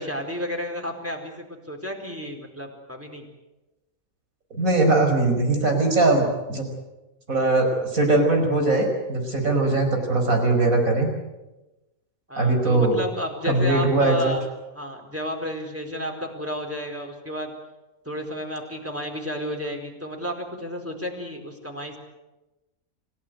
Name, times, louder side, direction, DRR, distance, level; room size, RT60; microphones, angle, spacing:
voice 1, 0.0-3.3 12.3-14.4 14.7-17.5 18.0-22.0, equal, 10° right, 2 dB, 4.4 m, -32 dB
voice 2, 4.5-6.6 7.3-11.1 12.4-13.0 13.5-14.3, right 2 dB, 70° right, 4 dB, 5.6 m, -21 dB
27.5 x 16.5 x 9.5 m, 1.0 s
omnidirectional pair, 1.5 m